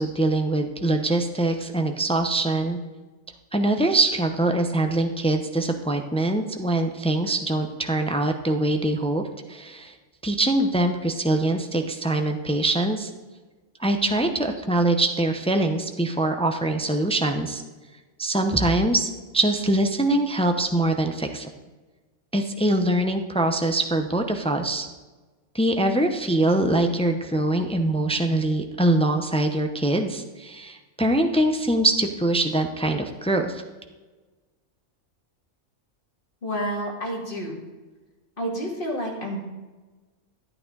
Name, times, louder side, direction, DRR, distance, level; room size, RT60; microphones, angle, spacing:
voice 1, 0.0-2.8 3.5-9.2 9.5-9.9 10.2-13.1 13.8-17.6 18.2-21.5 22.3-24.9 25.5-33.6, right 1 dB, 5° left, 6 dB, 0.5 m, -23 dB
voice 2, 36.4-37.6 38.4-39.4, equal, 40° left, -1 dB, 2.4 m, -29 dB
13.0 x 8.8 x 4.0 m, 1.3 s
omnidirectional pair, 1.4 m